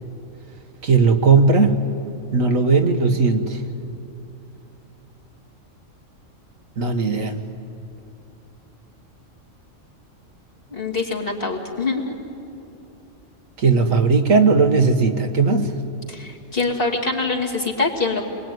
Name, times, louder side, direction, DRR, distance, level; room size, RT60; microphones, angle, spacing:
voice 1, 0.8-1.8 2.3-3.6 6.8-7.4 13.6-15.7, right 4 dB, 85° right, 5 dB, 1.8 m, -17 dB
voice 2, 10.7-12.1 16.1-18.2, left 3 dB, 45° left, -2 dB, 2.9 m, -24 dB
27.0 x 22.0 x 9.5 m, 2.8 s
omnidirectional pair, 1.3 m